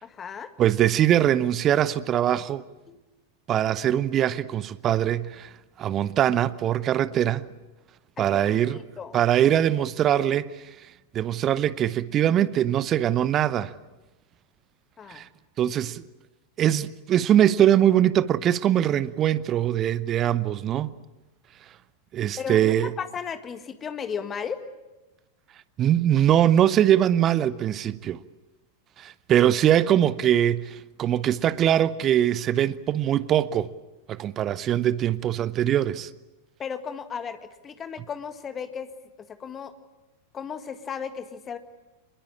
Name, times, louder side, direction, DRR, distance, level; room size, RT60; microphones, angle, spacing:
voice 1, 0.0-0.5 2.9-3.0 8.2-9.2 15.0-15.2 22.4-24.6 36.6-37.4 37.6-38.9 39.3-39.7 40.3-41.6, left 7 dB, 25° left, 1.8 m, -35 dB
voice 2, 0.6-2.6 3.5-5.5 5.8-7.5 8.2-8.8 9.1-10.5 11.1-13.7 15.1-15.3 15.6-16.0 16.6-20.9 22.1-22.9 25.8-28.2 29.0-33.7 34.1-36.1, right 11 dB, 30° right, 0.8 m, -22 dB
25.5 x 21.5 x 8.7 m
figure-of-eight pair, 90°, 0 cm